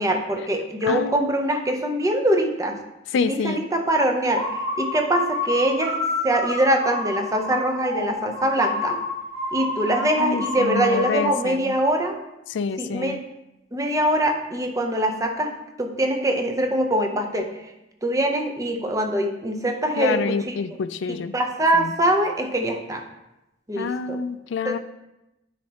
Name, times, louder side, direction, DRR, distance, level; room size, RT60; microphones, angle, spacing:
voice 1, 0.0-2.8 3.1-5.9 6.2-9.0 9.5-12.1 12.8-13.2 13.7-15.5 15.8-17.5 18.0-20.5 21.1-23.0 23.7-24.2 24.6-24.8, right 1 dB, 15° right, 3 dB, 0.6 m, -23 dB
voice 2, 0.9-1.5 3.1-3.6 9.9-11.7 12.5-13.2 20.0-21.4 21.7-21.9 23.8-24.8, left 5 dB, 70° left, 13 dB, 0.3 m, -28 dB
sound 1, 4.2-11.4, left 2 dB, 70° right, 2.3 m, -29 dB
9.6 x 4.2 x 2.9 m, 0.94 s
head